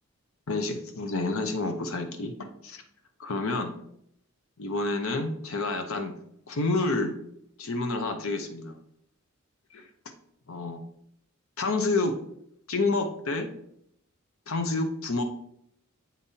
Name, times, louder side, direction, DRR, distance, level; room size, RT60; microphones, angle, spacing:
voice 1, 0.5-2.8 3.2-3.7 4.6-6.1 6.5-7.1 7.6-8.7 9.7-9.9 10.5-10.8 11.6-12.2 12.7-13.5 14.5-15.2, left 2 dB, 70° left, 7 dB, 0.8 m, -29 dB
7.4 x 5.4 x 2.7 m, 0.73 s
head